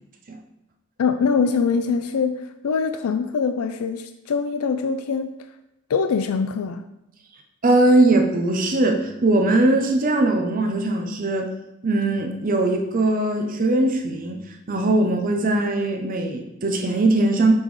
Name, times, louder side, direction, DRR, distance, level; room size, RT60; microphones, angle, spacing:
voice 1, 1.0-5.3 5.9-6.8, left 5 dB, 80° left, 8 dB, 0.4 m, -23 dB
voice 2, 7.6-11.5 11.8-14.4 14.7-17.5, right 2 dB, 40° right, 3 dB, 0.7 m, -20 dB
6.0 x 5.3 x 3.2 m, 0.91 s
head